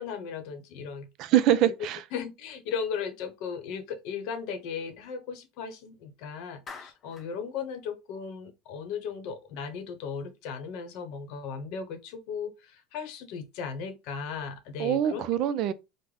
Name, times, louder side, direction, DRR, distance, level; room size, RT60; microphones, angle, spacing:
voice 1, 0.0-1.1 2.1-15.3, left 6 dB, 65° left, 0.8 m, -36 dB
voice 2, 1.2-2.0 14.8-15.7, right 11 dB, 55° right, 0.4 m, -24 dB
Clapping, 6.7-7.3, left 4 dB, 30° left, 0.7 m, -44 dB
3.3 x 2.0 x 3.7 m
supercardioid pair, 125°, 0 cm